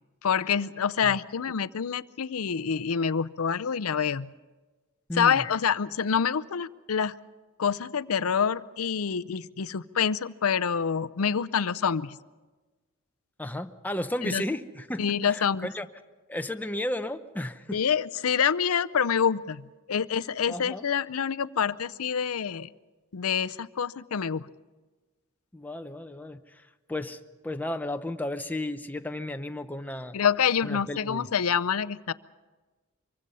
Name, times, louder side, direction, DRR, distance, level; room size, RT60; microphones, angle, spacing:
voice 1, 0.2-4.3 5.2-7.2 7.6-12.2 14.3-14.4 15.0-15.7 17.7-22.7 23.1-24.5 30.1-32.1, left 7 dB, 90° left, 14 dB, 0.6 m, -27 dB
voice 2, 5.1-5.4 13.4-15.9 16.3-17.8 20.5-20.8 25.5-26.6 26.9-30.2 30.6-31.3, left 1 dB, 10° left, 7 dB, 0.8 m, -34 dB
24.5 x 23.5 x 5.5 m, 1.3 s
head